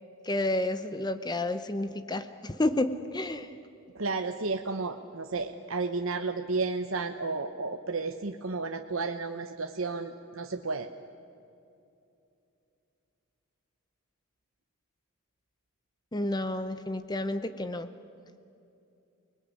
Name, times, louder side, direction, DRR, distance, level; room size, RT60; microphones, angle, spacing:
voice 1, 0.2-3.5 16.1-17.9, left 1 dB, 20° left, 10 dB, 0.8 m, -30 dB
voice 2, 3.9-10.9, right 3 dB, 70° right, 5 dB, 1.0 m, -32 dB
29.5 x 20.5 x 9.7 m, 2.7 s
head